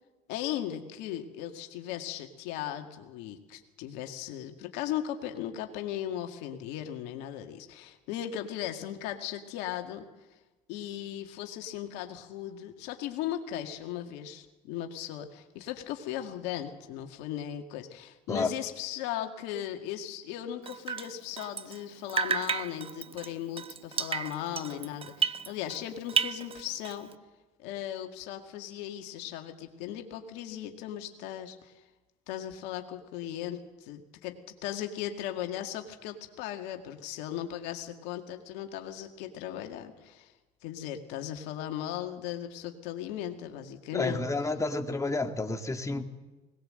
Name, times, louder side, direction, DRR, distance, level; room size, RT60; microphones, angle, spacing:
voice 1, 0.3-10.1 10.7-27.1 27.6-31.8 32.3-40.3 40.6-44.2, left 11 dB, 80° left, 2.0 m, -37 dB
Drip, 20.6-21.8 22.1-25.8 26.1-27.1, right 6 dB, 35° right, 0.9 m, -32 dB
voice 2, 43.9-46.1, left 3 dB, 15° left, 2.1 m, -30 dB
20.5 x 19.5 x 7.7 m
supercardioid pair, 75°, 17 cm